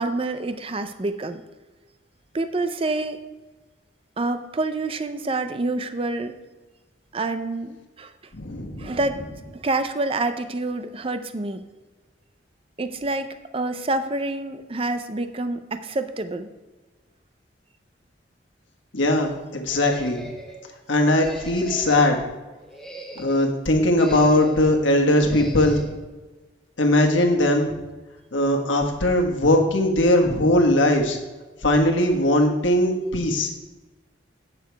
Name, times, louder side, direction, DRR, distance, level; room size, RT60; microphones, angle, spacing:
voice 1, 0.0-1.4 2.3-3.2 4.2-6.3 7.1-8.1 8.8-9.2 9.5-11.6 12.8-16.5, right 2 dB, 30° right, 10 dB, 0.5 m, -27 dB
voice 2, 8.3-9.0 18.9-20.3 20.9-22.2 23.1-25.9 26.8-27.7 28.3-31.2 31.6-33.5, left 1 dB, 80° left, 2 dB, 1.4 m, -20 dB
sound 1, 19.7-20.6 21.2-22.2 22.6-23.5 24.0-24.7 25.3-25.9, right 1 dB, 5° left, 1.0 m, -41 dB
8.6 x 6.7 x 4.6 m, 1.2 s
head